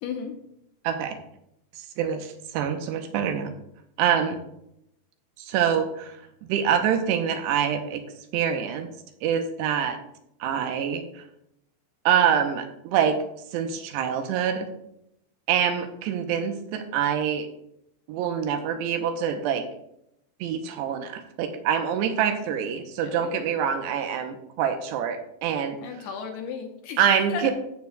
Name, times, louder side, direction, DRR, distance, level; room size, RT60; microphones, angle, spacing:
voice 1, 0.0-0.3 23.0-23.4 25.8-27.0 27.3-27.5, left 7 dB, 75° left, 3 dB, 2.9 m, -34 dB
voice 2, 0.8-1.2 1.8-3.5 4.0-4.4 5.4-6.2 6.5-8.0 8.3-8.9 9.2-10.0 10.4-11.2 12.1-13.2 13.5-14.7 15.5-17.5 18.1-19.6 20.4-25.8 27.0-27.5, right 8 dB, 85° right, 6 dB, 2.9 m, -25 dB
16.0 x 6.9 x 2.3 m, 0.80 s
omnidirectional pair, 5.0 m